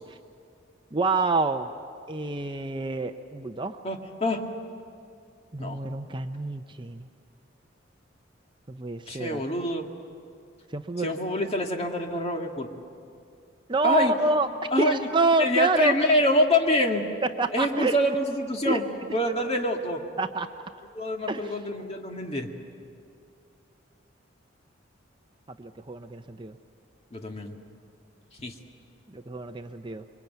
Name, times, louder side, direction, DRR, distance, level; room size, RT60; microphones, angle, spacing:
voice 1, 0.9-1.7 2.1-3.8 5.5-7.1 8.7-9.4 10.7-11.1 13.7-14.5 14.8-16.1 17.4-18.0 18.6-18.8 20.2-20.5 21.3-21.5 25.6-26.6 29.1-30.0, right 3 dB, 25° right, 7 dB, 0.6 m, -27 dB
voice 2, 3.8-4.4 5.6-5.8 9.1-9.9 11.0-12.7 13.8-14.1 14.7-14.9 15.4-17.1 17.5-18.8 19.1-20.0 20.9-22.5 27.1-27.5 28.4-28.5, left 1 dB, 30° left, 2 dB, 2.0 m, -26 dB
26.5 x 23.5 x 9.2 m, 2.4 s
head